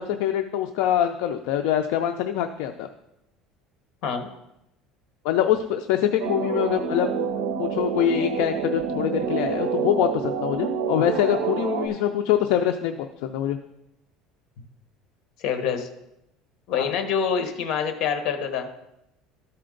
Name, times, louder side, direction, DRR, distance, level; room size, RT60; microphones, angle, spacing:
voice 1, 0.0-2.9 5.2-7.1 7.6-13.6 16.7-16.9, left 10 dB, 70° left, 6 dB, 0.4 m, -24 dB
sound 1, 6.2-11.9, right 6 dB, 80° right, 0.7 m, -27 dB
voice 2, 15.4-15.9 16.7-18.7, left 7 dB, 55° left, 7 dB, 1.1 m, -26 dB
13.0 x 4.3 x 3.8 m, 0.86 s
cardioid pair, 175°, 0 cm